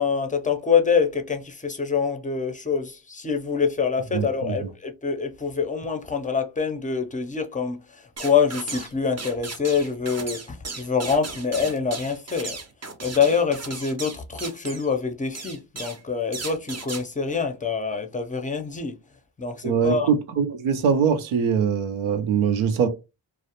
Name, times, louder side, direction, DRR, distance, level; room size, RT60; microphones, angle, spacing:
voice 1, 0.0-12.6 13.0-19.0 19.4-20.1, left 6 dB, 15° left, 0.5 m, -25 dB
voice 2, 4.1-4.6 19.6-22.9, right 6 dB, 85° right, 0.6 m, -22 dB
sound 1, 8.2-8.9 9.2-14.9 15.3-16.0 16.3-17.0, right 3 dB, 35° right, 0.6 m, -36 dB
2.4 x 2.0 x 2.8 m
cardioid pair, 65°, 48 cm